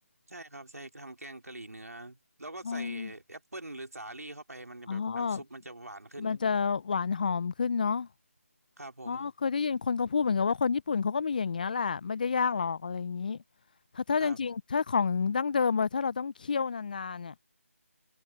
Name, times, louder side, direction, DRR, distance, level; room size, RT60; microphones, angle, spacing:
voice 1, 0.3-6.4 8.8-9.3 14.2-14.4, right 2 dB, 90° right, 3.7 m, -44 dB
voice 2, 2.6-3.1 4.9-5.4 6.2-8.1 9.1-13.4 13.9-17.3, left 5 dB, 35° left, 0.6 m, -29 dB
figure-of-eight pair, 165°, 8 cm